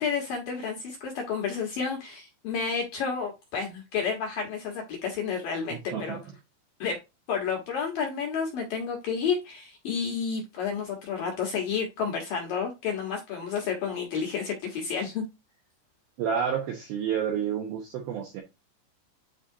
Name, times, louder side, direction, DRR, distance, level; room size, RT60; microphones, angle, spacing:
voice 1, 0.0-6.2 6.8-7.0 7.3-15.3, left 6 dB, 70° left, 2.2 m, -30 dB
voice 2, 5.7-6.2 16.2-18.4, right 8 dB, 80° right, 2.2 m, -30 dB
9.6 x 4.2 x 2.7 m
omnidirectional pair, 5.7 m